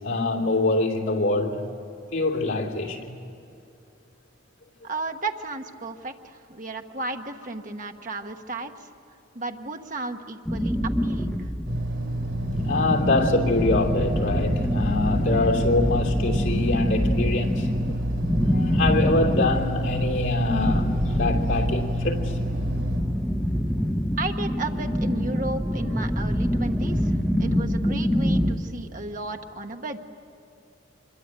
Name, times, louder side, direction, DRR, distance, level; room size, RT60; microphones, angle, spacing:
voice 1, 0.0-1.6 2.1-3.2 12.6-17.7 18.4-22.4, left 2 dB, 75° left, 0 dB, 2.9 m, -25 dB
voice 2, 4.8-8.9 9.3-11.5 24.2-30.0, right 2 dB, 40° right, 4 dB, 1.2 m, -34 dB
sound 1, 10.5-28.5, equal, 5° left, 1.0 m, -26 dB
sound 2, 11.7-23.0, right 1 dB, 75° right, 4.0 m, -30 dB
25.5 x 22.5 x 9.0 m, 2.5 s
head